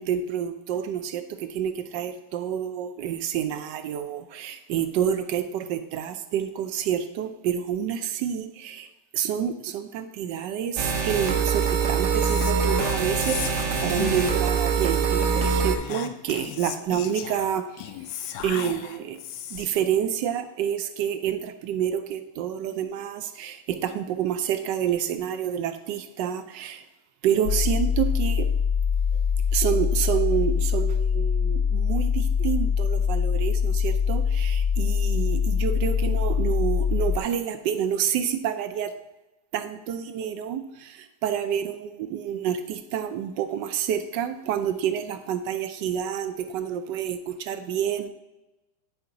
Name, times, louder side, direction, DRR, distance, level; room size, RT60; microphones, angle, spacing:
voice 1, 0.0-8.9 9.1-17.6 18.4-19.2 19.5-26.8 27.2-28.5 29.5-38.9 39.5-48.1, right 9 dB, 80° right, 8 dB, 1.3 m, -28 dB
sound 1, 10.8-15.8, right 6 dB, 55° right, 0.9 m, -24 dB
Whispering, 12.2-14.5 15.4-19.8, left 10 dB, 85° left, 1.3 m, -36 dB
sound 2, 27.5-37.2, left 6 dB, 65° left, 1.0 m, -23 dB
9.4 x 4.6 x 3.8 m, 1.0 s
omnidirectional pair, 1.9 m